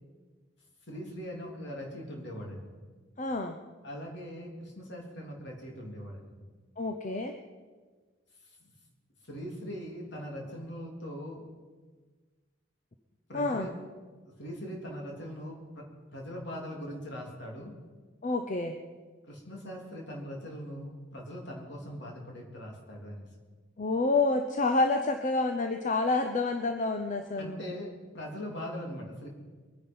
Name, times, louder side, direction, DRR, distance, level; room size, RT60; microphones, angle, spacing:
voice 1, 0.9-2.7 3.8-6.4 8.6-8.7 9.3-11.5 13.3-13.7 14.4-17.7 19.3-23.2 27.4-29.3, equal, 65° left, -1 dB, 3.4 m, -41 dB
voice 2, 3.2-3.6 6.8-7.3 13.3-13.7 18.2-18.7 23.8-27.6, left 3 dB, 40° left, 6 dB, 0.8 m, -28 dB
22.5 x 10.0 x 5.6 m, 1.4 s
head